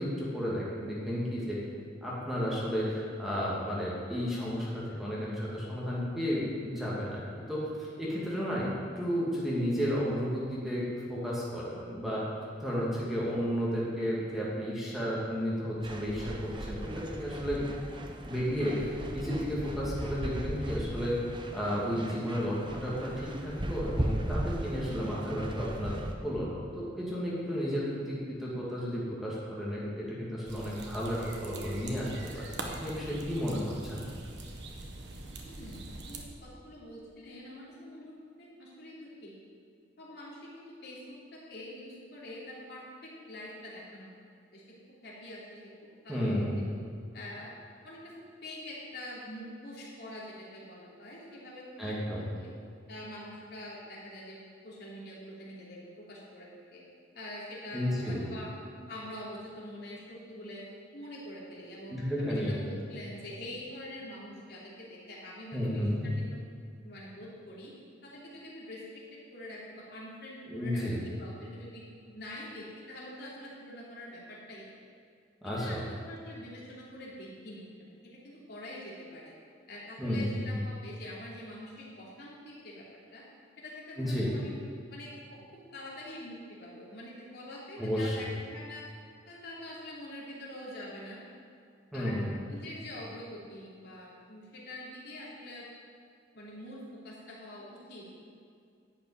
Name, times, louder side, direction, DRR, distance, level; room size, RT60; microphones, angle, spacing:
voice 1, 0.0-1.6 2.0-8.7 9.0-10.8 11.1-12.2 12.6-17.6 18.2-21.2 21.5-25.9 26.2-34.1 46.1-46.7 51.8-52.3 57.7-58.2 61.9-62.6 65.5-66.1 70.5-71.0 75.4-75.8 80.0-80.5 84.0-84.3 87.8-88.2 91.9-92.3, equal, ahead, -7 dB, 2.3 m, -32 dB
sound 1, 15.8-26.1, right 1 dB, 25° right, 0.9 m, -37 dB
sound 2, 30.4-36.2, right 2 dB, 65° right, 1.4 m, -43 dB
voice 2, 35.4-39.3 40.0-44.1 44.5-44.6 45.0-46.4 47.1-47.5 47.8-48.1 48.4-52.5 52.9-54.4 54.6-56.8 57.1-58.5 58.9-60.7 60.9-61.9 62.3-66.2 66.8-67.7 68.0-68.8 69.3-74.7 75.4-79.3 79.7-82.8 83.1-83.2 83.6-84.6 84.9-85.4 85.7-88.8 89.2-91.2 91.9-92.1 92.5-95.7 96.3-98.1, left 1 dB, 60° left, -5 dB, 3.2 m, -45 dB
11.5 x 5.9 x 9.1 m, 2.3 s
head